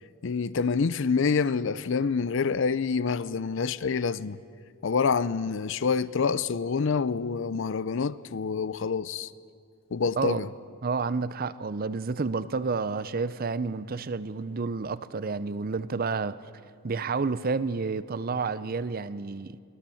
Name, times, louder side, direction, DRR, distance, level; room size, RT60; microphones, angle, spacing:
voice 1, 0.2-4.4 4.8-9.3 9.9-10.5, left 5 dB, 60° left, 0.5 m, -27 dB
voice 2, 10.8-16.4 16.8-19.6, right 4 dB, 45° right, 0.5 m, -30 dB
24.0 x 16.5 x 7.1 m
head